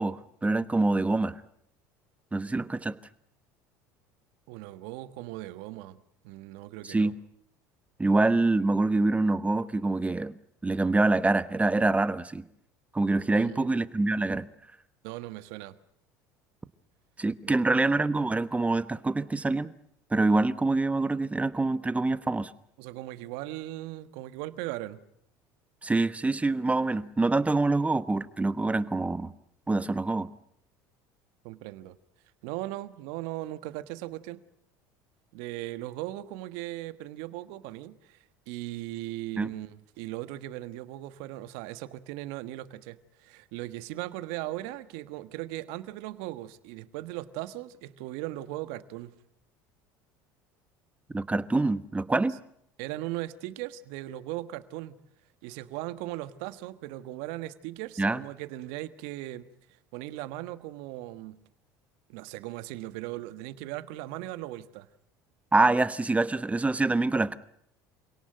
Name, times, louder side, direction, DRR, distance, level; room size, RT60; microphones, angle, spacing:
voice 1, 0.0-1.4 2.3-3.0 6.8-7.1 8.0-10.3 10.6-12.4 12.9-14.5 17.2-19.7 20.1-22.5 25.8-29.3 29.7-30.3 39.4-39.5 51.1-52.4 58.0-58.2 65.5-67.4, right 2 dB, 15° right, 15 dB, 1.2 m, -25 dB
voice 2, 4.5-6.0 6.2-7.1 13.3-13.8 15.0-15.8 17.5-17.8 22.8-25.0 31.4-32.0 32.4-34.4 35.3-38.2 38.5-49.1 52.8-55.0 55.4-59.5 59.9-61.4 62.1-64.9, right 16 dB, 75° right, 14 dB, 1.4 m, -38 dB
27.0 x 18.0 x 9.1 m, 0.72 s
hypercardioid pair, 85°, 10 cm